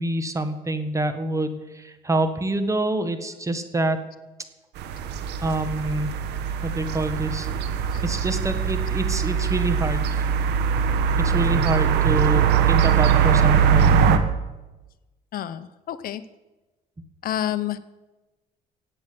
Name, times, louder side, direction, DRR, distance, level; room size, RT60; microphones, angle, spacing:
voice 1, 0.0-4.0 5.4-6.2 6.6-7.5 8.0-10.2 11.2-14.2, right 2 dB, 20° right, 10 dB, 1.6 m, -26 dB
sound 1, 4.8-14.2, right 7 dB, 80° right, 1.4 m, -21 dB
voice 2, 15.3-16.2 17.2-17.8, left 11 dB, 60° left, 13 dB, 0.8 m, -29 dB
16.5 x 8.8 x 7.8 m, 1.1 s
cardioid pair, 110°, 17 cm